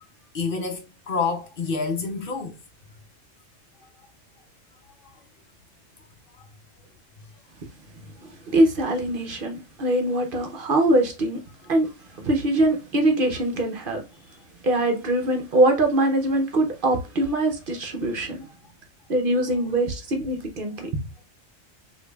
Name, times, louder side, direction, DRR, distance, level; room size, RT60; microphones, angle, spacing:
voice 1, 0.3-2.6 3.8-3.9 5.0-5.2 18.4-18.5, left 4 dB, 55° left, 0.8 m, -28 dB
voice 2, 8.2-11.4 11.7-14.0 14.6-18.4 19.1-20.9, right 1 dB, 55° right, 0.8 m, -23 dB
5.0 x 2.6 x 2.3 m
omnidirectional pair, 1.2 m